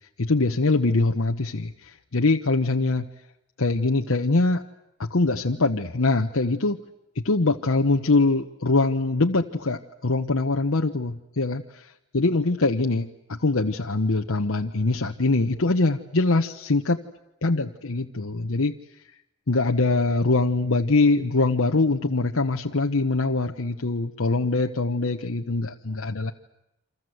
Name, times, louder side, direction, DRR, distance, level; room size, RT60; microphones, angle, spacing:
voice 1, 0.2-3.1 3.6-4.6 5.0-6.8 7.2-17.0 17.4-18.7 19.5-26.3, left 3 dB, 70° left, 3 dB, 1.0 m, -23 dB
28.5 x 26.0 x 7.9 m, 0.88 s
head